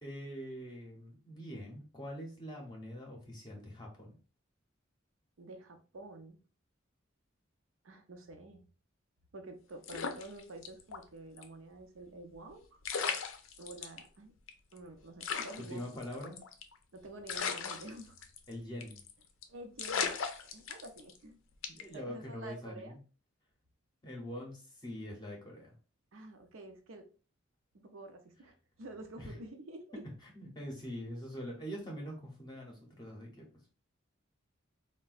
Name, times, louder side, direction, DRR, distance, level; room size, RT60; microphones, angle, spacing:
voice 1, 0.0-4.2 15.6-16.4 18.5-19.0 21.7-23.0 24.0-25.7 29.2-29.3 30.2-33.4, equal, 20° left, -1 dB, 0.7 m, -44 dB
voice 2, 5.4-6.4 7.8-8.7 9.3-12.8 13.6-14.3 14.7-15.8 16.1-16.3 16.9-18.2 19.5-20.2 20.5-21.4 21.9-23.0 26.1-27.1 27.8-30.0, right 2 dB, 80° right, 5 dB, 0.6 m, -49 dB
sound 1, 9.8-11.0 11.4-11.5 12.5-12.6 12.8-14.0 14.5-14.6 14.8-14.9 15.2-16.8 17.3-18.5 18.8-19.1 19.4-19.5 19.8-21.2 21.6-21.9, left 6 dB, 85° left, 0.5 m, -37 dB
3.7 x 2.1 x 2.4 m, 0.36 s
head